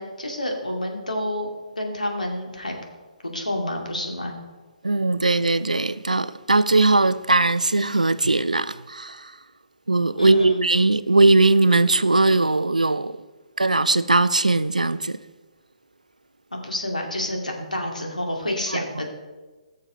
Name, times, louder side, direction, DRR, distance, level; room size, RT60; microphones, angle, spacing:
voice 1, 0.0-1.5 1.8-2.8 3.2-4.3 10.2-10.6 16.5-19.1, left 1 dB, 80° left, 2.3 m, -29 dB
voice 2, 4.8-9.3 9.9-13.2 13.6-15.2 18.7-18.8, right 2 dB, 80° right, 0.5 m, -19 dB
16.5 x 6.6 x 4.3 m
figure-of-eight pair, 130°, 4 cm